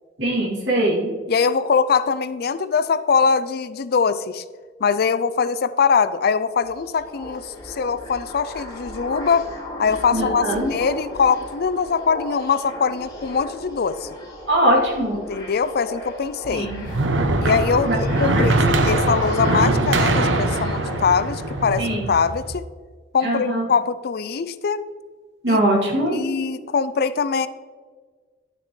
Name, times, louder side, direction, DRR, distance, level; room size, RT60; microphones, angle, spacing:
voice 1, 0.2-1.1 10.1-10.7 14.5-15.2 16.5-16.9 17.9-18.0 18.3-18.7 21.8-22.1 23.2-23.7 25.4-26.2, right 1 dB, 65° right, -3 dB, 2.7 m, -21 dB
voice 2, 1.3-4.4 4.8-9.5 9.8-14.1 15.1-16.7 17.4-22.6 23.1-24.8 25.5-25.6 26.1-27.5, left 5 dB, 55° left, 14 dB, 0.4 m, -22 dB
sound 1, 6.4-21.7, left 1 dB, 20° left, 2.4 m, -35 dB
sound 2, 16.4-22.6, right 2 dB, 90° right, 0.8 m, -22 dB
11.5 x 6.6 x 3.2 m, 1.5 s
head